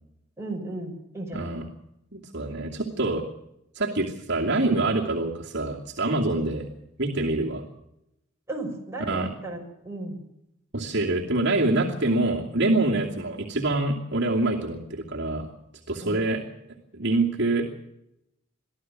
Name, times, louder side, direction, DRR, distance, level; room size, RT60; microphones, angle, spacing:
voice 1, 0.4-1.5 8.5-10.2 13.0-13.2 16.0-16.2, right 2 dB, 10° right, -1 dB, 5.9 m, -35 dB
voice 2, 1.3-1.6 2.1-3.2 3.7-6.7 7.0-7.6 9.1-9.3 10.7-15.5 15.9-16.4 16.9-17.8, right 2 dB, 55° right, -1 dB, 2.6 m, -25 dB
24.0 x 14.5 x 7.5 m, 0.83 s
head